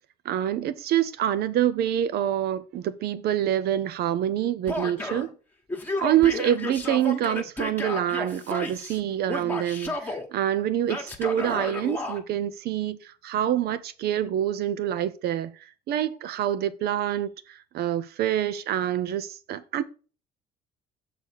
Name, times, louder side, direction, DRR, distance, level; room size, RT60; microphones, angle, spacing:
voice 1, 0.2-5.3 6.0-19.8, right 11 dB, 70° right, 0.8 m, -26 dB
Male speech man speaking / Yell, 4.7-5.3 5.7-9.0 9.3-10.2 10.9-12.2, left 2 dB, 10° left, 1.5 m, -32 dB
6.5 x 4.1 x 6.3 m
cardioid pair, 110°, 17 cm